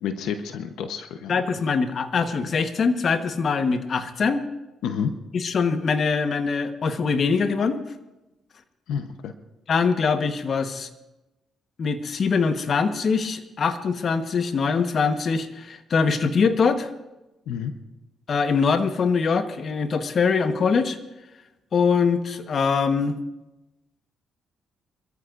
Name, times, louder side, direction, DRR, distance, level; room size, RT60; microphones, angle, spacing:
voice 1, 0.0-1.4 4.8-5.1 8.9-9.3 17.5-17.7, left 7 dB, 85° left, 7 dB, 0.9 m, -29 dB
voice 2, 1.3-4.4 5.3-7.8 9.7-10.9 11.8-16.9 18.3-21.0 21.7-23.1, left 5 dB, 50° left, 8 dB, 1.2 m, -23 dB
26.0 x 14.0 x 2.6 m, 1.0 s
cardioid pair, 90°, 0 cm